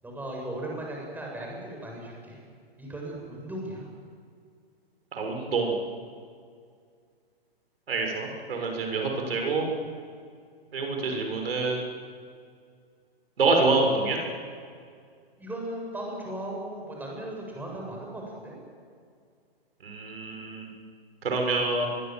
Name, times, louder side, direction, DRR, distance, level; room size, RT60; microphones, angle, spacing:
voice 1, 0.0-2.4 2.8-3.9 15.4-18.6, right 1 dB, 5° right, -1 dB, 7.2 m, -37 dB
voice 2, 5.1-5.7 7.9-9.6 10.7-11.8 13.4-14.2 19.8-20.7 21.2-21.9, right 3 dB, 75° right, 2 dB, 6.6 m, -26 dB
25.0 x 22.5 x 7.7 m, 2.2 s
hypercardioid pair, 130°, 30 cm